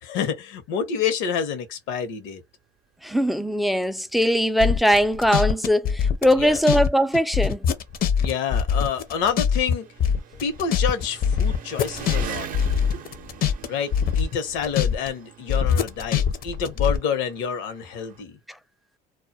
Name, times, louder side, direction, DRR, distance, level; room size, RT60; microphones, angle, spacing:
voice 1, 0.0-2.4 6.3-6.6 8.2-9.9 10.4-13.0 13.7-18.4, left 7 dB, 75° left, 0.9 m, -28 dB
voice 2, 3.0-7.7, equal, ahead, 0.4 m, -21 dB
Engine, 3.7-3.8 4.1-4.2 5.2-5.3 5.5-18.2, right 8 dB, 45° right, 0.6 m, -43 dB
sound 1, 4.6-6.9 7.1-9.7 10.0-13.7 13.9-15.1 15.5-17.0, left 7 dB, 50° left, 0.6 m, -22 dB
2.2 x 2.1 x 2.7 m
supercardioid pair, 80°, 19 cm